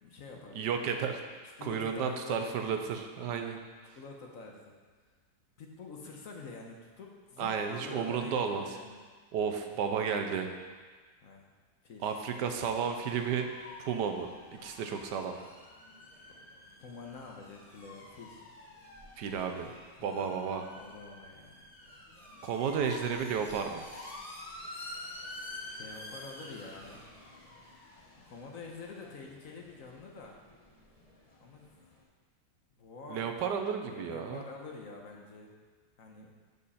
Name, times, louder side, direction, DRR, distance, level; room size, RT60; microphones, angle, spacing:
voice 1, 0.0-0.6 1.4-2.8 4.0-4.7 5.6-9.0 11.2-11.5 11.8-12.1 16.3-16.4 16.8-18.5 20.0-20.4 20.7-21.7 25.6-27.1 28.2-30.4 31.4-31.7 32.8-33.3 33.8-35.5 36.0-36.3, left 4 dB, 55° left, 1 dB, 1.3 m, -47 dB
voice 2, 0.5-1.2 1.6-3.6 7.4-8.6 9.3-10.5 12.0-13.5 13.8-14.3 14.6-15.3 19.2-19.7 20.0-20.7 22.4-23.8 33.1-34.4, right 6 dB, 80° right, 5 dB, 1.4 m, -32 dB
sound 1, 12.5-32.0, left 2 dB, 25° left, 1.3 m, -49 dB
12.0 x 5.4 x 4.2 m, 1.5 s
omnidirectional pair, 1.8 m